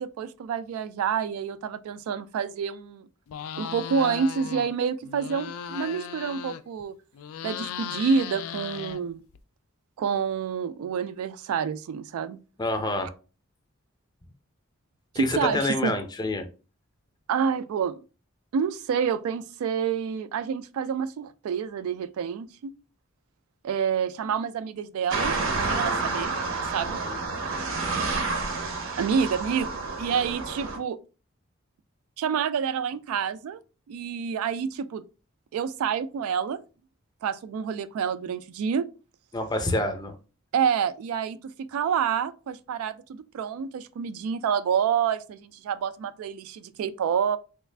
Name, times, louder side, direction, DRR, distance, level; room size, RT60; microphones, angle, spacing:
voice 1, 0.0-3.1 3.6-6.9 7.4-9.2 10.0-12.4 15.1-15.9 17.3-18.0 18.5-22.7 23.6-25.4 25.7-26.3 26.7-27.0 29.0-29.7 30.0-31.0 32.2-33.6 33.9-35.0 35.5-36.6 37.2-38.9 40.5-43.0 43.3-47.4, right 7 dB, 90° right, 0.3 m, -28 dB
sound 1, 3.3-4.7 5.0-6.8 7.1-9.4, left 8 dB, 85° left, 0.3 m, -37 dB
voice 2, 12.6-13.1 15.1-16.5 25.7-26.1 27.1-27.2 39.3-40.1, left 2 dB, 20° left, 0.5 m, -28 dB
sound 2, 25.1-30.8, right 3 dB, 65° right, 0.7 m, -29 dB
3.3 x 2.4 x 3.2 m
head